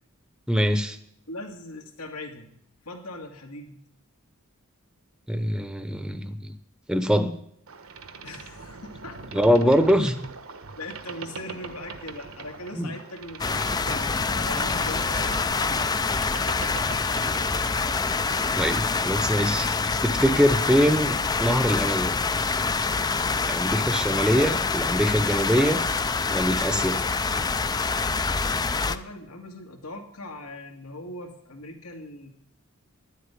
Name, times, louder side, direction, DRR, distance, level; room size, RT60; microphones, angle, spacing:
voice 1, 0.5-1.0 5.3-6.5 6.9-7.3 9.3-10.1 12.7-12.9 18.6-19.8 20.0-22.2 23.5-25.8 26.3-27.0, equal, 5° right, 9 dB, 0.8 m, -23 dB
voice 2, 1.3-2.5 2.8-3.8 8.2-9.4 10.8-15.9 28.9-32.3, left 1 dB, 90° left, 3 dB, 2.3 m, -40 dB
Boat Water vehicle, 7.7-18.2, right 4 dB, 70° right, 1.2 m, -41 dB
sound 1, 13.4-29.0, left 4 dB, 20° left, 0.4 m, -26 dB
11.0 x 8.2 x 9.9 m, 0.71 s
head